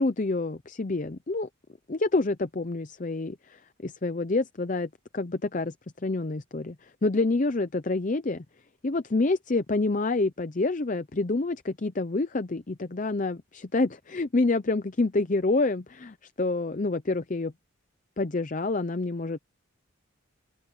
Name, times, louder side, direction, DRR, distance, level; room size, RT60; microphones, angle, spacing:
voice 1, 0.0-1.5 1.9-5.7 6.0-8.4 8.8-17.5 18.2-19.4, left 3 dB, 35° left, 0.6 m, -27 dB
head